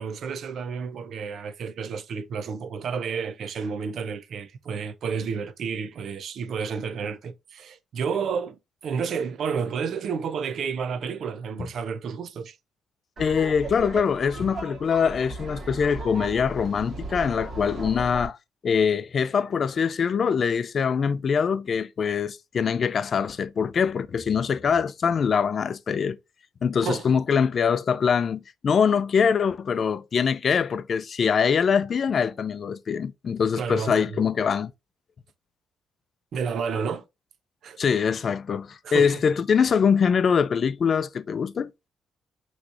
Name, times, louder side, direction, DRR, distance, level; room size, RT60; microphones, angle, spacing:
voice 1, 0.0-12.6 26.8-27.0 33.6-34.2 36.3-37.0 37.6-37.8 38.8-39.2, right 6 dB, 65° right, 0.6 m, -31 dB
voice 2, 13.2-18.4 18.6-26.2 26.6-34.7 37.8-41.7, left 6 dB, 50° left, 0.4 m, -23 dB
Laughter, 13.2-18.3, right 2 dB, 45° right, 2.3 m, -36 dB
6.0 x 3.2 x 2.5 m
cardioid pair, 90°, 0 cm